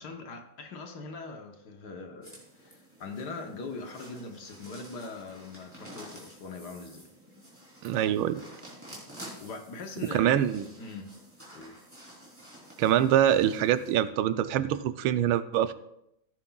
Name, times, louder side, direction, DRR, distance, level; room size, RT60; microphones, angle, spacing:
voice 1, 0.0-7.1 9.4-11.1 11.5-11.7, left 3 dB, 60° left, 4 dB, 1.5 m, -41 dB
sound 1, 2.2-14.0, equal, 5° right, 3.3 m, -50 dB
voice 2, 7.8-8.4 10.1-10.6 12.8-15.7, right 11 dB, 85° right, 12 dB, 1.4 m, -24 dB
15.5 x 9.6 x 2.3 m, 0.78 s
omnidirectional pair, 2.2 m